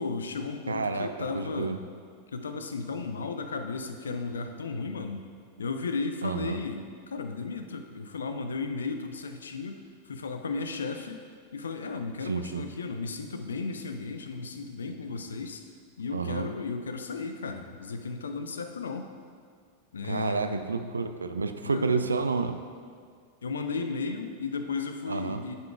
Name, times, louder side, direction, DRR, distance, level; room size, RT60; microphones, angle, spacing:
voice 1, 0.0-1.8 2.3-5.2 5.6-9.8 10.1-11.2 11.5-15.6 16.0-19.1 19.9-20.7 21.6-22.1 23.4-25.6, left 4 dB, 70° left, 7 dB, 0.4 m, -34 dB
voice 2, 0.7-1.1 1.3-1.8 6.2-6.6 12.2-12.6 16.1-16.5 20.0-22.6 25.1-25.4, right 4 dB, 75° right, 8 dB, 0.4 m, -29 dB
9.9 x 5.5 x 2.4 m, 2.1 s
figure-of-eight pair, 90°, 0 cm